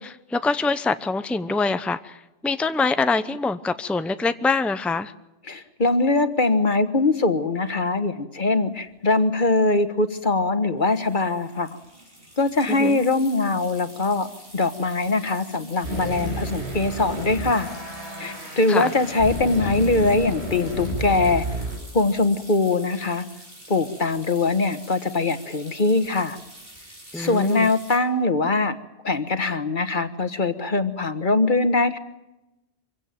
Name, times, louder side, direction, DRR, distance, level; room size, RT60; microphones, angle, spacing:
voice 1, 0.0-2.2 2.4-5.1 12.7-13.0 18.7-18.9 27.1-27.7, left 3 dB, ahead, 11 dB, 0.8 m, -24 dB
voice 2, 5.5-11.8 12.4-14.3 14.5-17.7 18.2-21.4 21.9-23.3 23.7-26.4 27.1-28.8 29.0-32.0, left 3 dB, 45° left, 10 dB, 1.7 m, -22 dB
sound 1, 8.9-9.0 9.2-9.5 10.8-28.0, right 1 dB, 55° right, 7.9 m, -46 dB
sound 2, 15.8-21.8, equal, 75° right, 7.0 m, -31 dB
25.0 x 16.5 x 9.2 m, 0.96 s
omnidirectional pair, 1.1 m